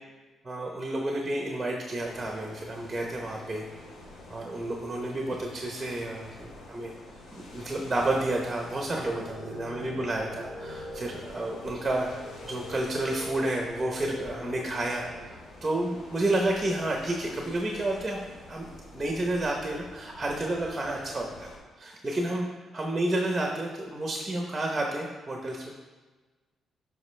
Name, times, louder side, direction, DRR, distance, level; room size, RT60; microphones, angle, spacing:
voice 1, 0.4-3.7 4.3-6.9 7.3-12.1 12.4-15.3 15.6-18.2 18.5-18.7 18.9-21.5 21.8-22.5 22.7-25.7, right 1 dB, 10° right, 0 dB, 0.9 m, -30 dB
sound 1, 2.0-21.6, left 2 dB, 85° left, 2.6 m, -48 dB
sound 2, 8.8-15.2, equal, 65° left, 2.7 m, -43 dB
13.5 x 5.3 x 3.3 m, 1.3 s
cardioid pair, 175°, 0 cm